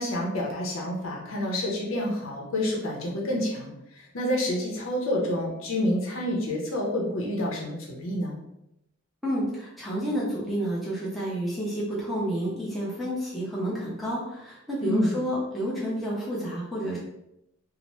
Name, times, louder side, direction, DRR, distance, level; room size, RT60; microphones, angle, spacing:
voice 1, 0.0-8.4 14.8-15.1, left 1 dB, 70° left, -2 dB, 0.7 m, -28 dB
voice 2, 9.2-17.0, equal, ahead, -7 dB, 0.7 m, -30 dB
2.8 x 2.0 x 3.0 m, 0.84 s
head